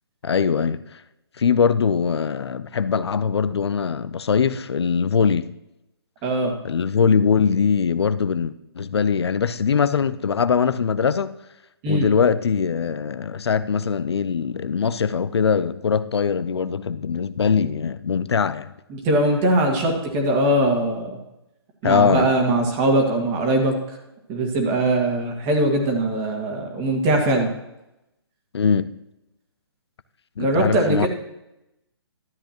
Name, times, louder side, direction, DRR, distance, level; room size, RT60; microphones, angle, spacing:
voice 1, 0.2-1.0 1.4-5.5 6.6-11.3 11.9-18.7 21.8-22.3 28.5-28.9 30.4-31.1, left 6 dB, 80° left, 0.5 m, -21 dB
voice 2, 6.2-6.5 11.8-12.1 18.9-21.1 21.8-23.8 24.3-27.5 30.4-31.1, right 1 dB, 25° right, 1.9 m, -21 dB
12.5 x 8.0 x 3.0 m
hypercardioid pair, 145°, 14 cm